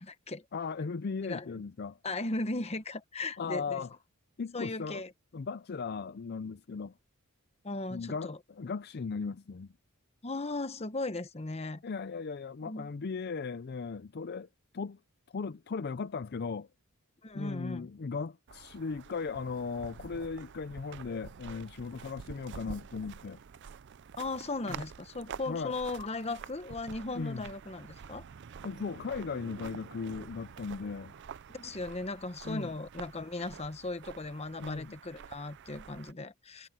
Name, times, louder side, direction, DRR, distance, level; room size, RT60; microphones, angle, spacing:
voice 1, 0.0-0.4 1.2-1.5 2.0-3.8 4.5-5.1 7.6-8.4 10.2-11.8 12.6-12.9 17.2-17.9 22.0-22.1 24.2-28.2 31.5-36.7, left 2 dB, 30° left, 1.1 m, -37 dB
voice 2, 0.5-2.0 3.4-3.9 4.4-5.0 5.3-6.9 7.9-9.7 11.8-14.5 14.7-15.0 15.3-16.7 17.3-23.4 24.7-24.8 25.5-25.8 27.1-27.4 28.6-31.1 32.4-32.7 34.6-34.9, left 5 dB, 50° left, 0.5 m, -37 dB
sound 1, 18.5-36.1, right 6 dB, 55° right, 0.4 m, -48 dB
head